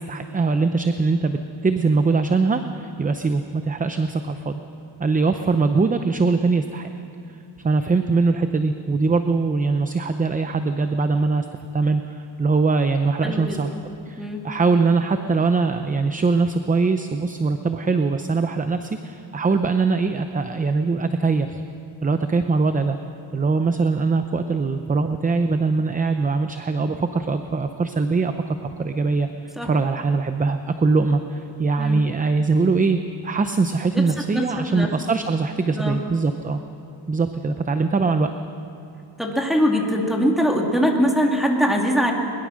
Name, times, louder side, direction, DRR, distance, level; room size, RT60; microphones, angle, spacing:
voice 1, 0.0-4.6 5.0-6.9 7.6-11.5 11.7-13.7 14.1-21.6 22.0-23.0 23.3-36.6 37.1-38.3, right 4 dB, 20° right, 8 dB, 0.6 m, -22 dB
voice 2, 13.2-13.6 14.2-14.4 29.6-29.7 31.8-32.0 33.9-34.1 34.3-34.9 35.7-36.0 39.2-42.1, equal, ahead, 1 dB, 2.5 m, -22 dB
22.0 x 21.0 x 6.3 m, 2.8 s
cardioid pair, 155°, 46 cm